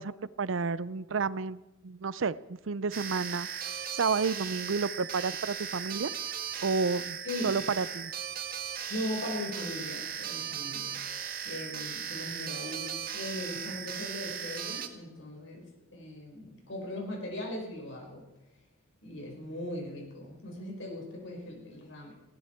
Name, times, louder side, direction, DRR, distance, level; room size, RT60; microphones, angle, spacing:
voice 1, 0.0-6.1 6.6-7.2 7.4-8.1, right 4 dB, 85° right, 18 dB, 0.6 m, -31 dB
sound 1, 2.9-14.9, right 8 dB, 50° right, 1.5 m, -37 dB
voice 2, 8.9-10.9 11.4-18.2 19.0-22.1, left 1 dB, 75° left, 1 dB, 4.8 m, -39 dB
19.5 x 16.5 x 4.5 m, 1.0 s
head